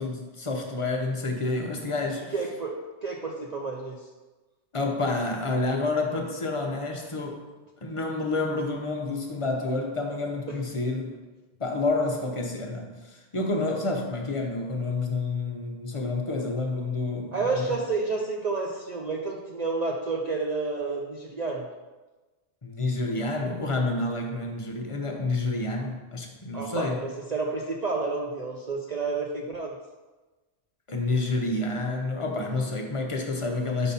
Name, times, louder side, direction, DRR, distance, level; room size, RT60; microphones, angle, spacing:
voice 1, 0.0-2.3 4.7-7.4 7.8-11.1 11.6-17.7 22.6-27.0 30.9-33.9, left 3 dB, 30° left, 1 dB, 0.7 m, -29 dB
voice 2, 2.3-2.7 3.0-4.0 10.5-10.6 17.3-21.7 26.5-29.7, right 3 dB, 50° right, 0 dB, 0.5 m, -30 dB
5.4 x 4.1 x 5.4 m, 1.2 s
omnidirectional pair, 1.2 m